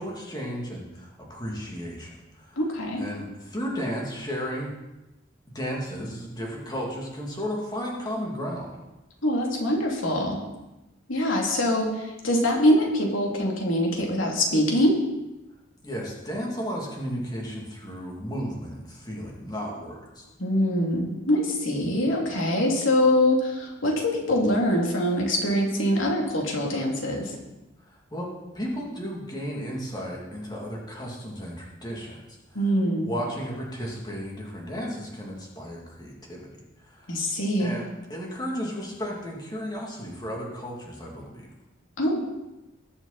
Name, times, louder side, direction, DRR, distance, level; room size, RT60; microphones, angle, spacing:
voice 1, 0.0-2.6 3.0-4.8 5.5-8.7 15.8-20.3 27.8-32.2 33.0-36.5 36.8-37.2 37.6-41.5, equal, 20° left, -2 dB, 2.6 m, -34 dB
voice 2, 2.6-3.0 9.2-10.4 11.1-15.0 20.4-27.4 32.5-33.1 37.1-37.7 42.0-42.2, left 1 dB, 85° left, -1 dB, 3.0 m, -24 dB
20.0 x 7.1 x 4.2 m, 1.0 s
head